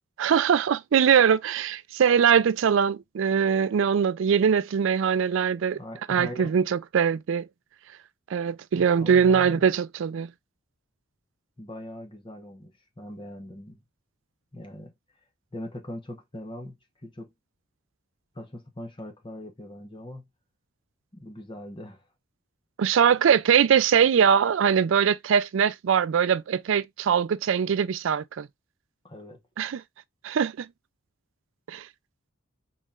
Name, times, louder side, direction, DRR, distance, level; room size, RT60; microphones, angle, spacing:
voice 1, 0.2-5.8 6.1-7.5 8.3-10.3 22.8-28.5 29.6-29.8 30.2-30.7 31.7-31.9, right 7 dB, 60° right, 0.3 m, -22 dB
voice 2, 5.7-6.5 8.7-9.7 11.6-13.8 14.5-14.9 15.5-16.8 17.0-17.3 18.3-20.3 21.1-22.0 29.0-29.4, left 1 dB, 25° left, 1.0 m, -40 dB
4.1 x 3.7 x 2.4 m
head